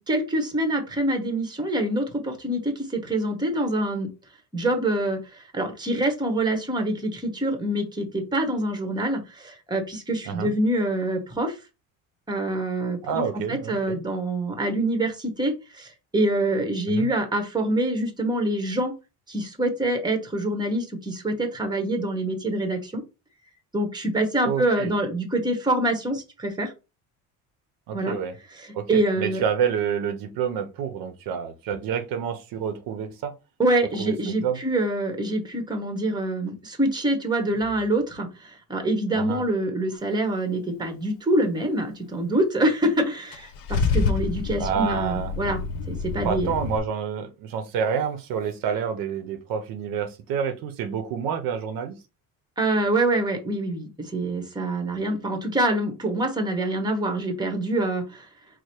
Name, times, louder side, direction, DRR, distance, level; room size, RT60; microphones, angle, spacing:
voice 1, 0.0-4.1 4.5-11.6 12.3-18.9 19.3-23.0 23.7-26.7 27.9-28.2 28.5-29.4 33.6-45.6 45.9-46.5 52.6-58.3, right 1 dB, 10° right, 1.0 m, -25 dB
voice 2, 13.0-14.0 16.9-17.1 24.4-24.9 27.9-28.3 28.7-33.3 34.0-34.6 39.1-39.5 44.6-45.3 46.2-52.0, right 7 dB, 70° right, 0.8 m, -28 dB
Car / Engine starting / Idling, 43.3-46.8, left 5 dB, 65° left, 0.8 m, -27 dB
4.8 x 2.0 x 4.3 m
cardioid pair, 140°, 36 cm